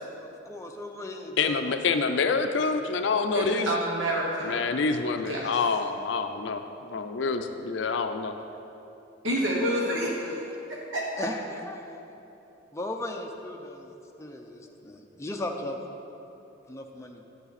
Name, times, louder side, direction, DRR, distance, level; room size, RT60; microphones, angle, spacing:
voice 1, 0.2-2.1 9.8-10.1 11.2-12.0 12.7-15.8 16.7-17.2, left 1 dB, 15° left, 2 dB, 0.6 m, -37 dB
voice 2, 1.4-3.7 4.4-8.3, left 4 dB, 65° left, 7 dB, 0.4 m, -27 dB
voice 3, 3.3-4.6 5.3-5.6 9.2-10.3 10.7-11.1, right 1 dB, 80° right, -3 dB, 1.1 m, -28 dB
9.8 x 7.9 x 4.1 m, 3.0 s
head